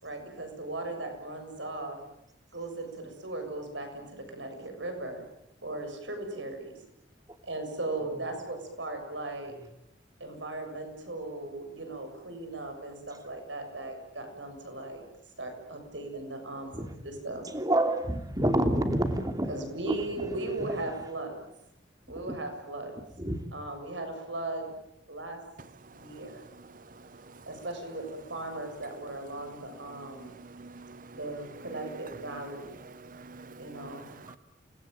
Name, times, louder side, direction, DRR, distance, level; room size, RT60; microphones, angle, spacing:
voice 1, 0.0-2.0 2.5-5.2 5.6-6.8 7.4-9.6 10.2-15.0 15.4-17.5 19.5-21.4 22.1-23.0 23.5-24.8 25.1-25.4 26.0-26.4 27.5-30.3 31.1-32.7 33.6-34.1, right 2 dB, 85° right, 7.1 m, -37 dB
voice 2, 17.5-19.5 23.2-23.4, right 1 dB, 20° right, 3.0 m, -27 dB
voice 3, 27.0-27.4 30.1-31.2 32.3-32.4 32.9-34.4, right 3 dB, 45° right, 0.9 m, -48 dB
29.0 x 20.5 x 9.2 m
head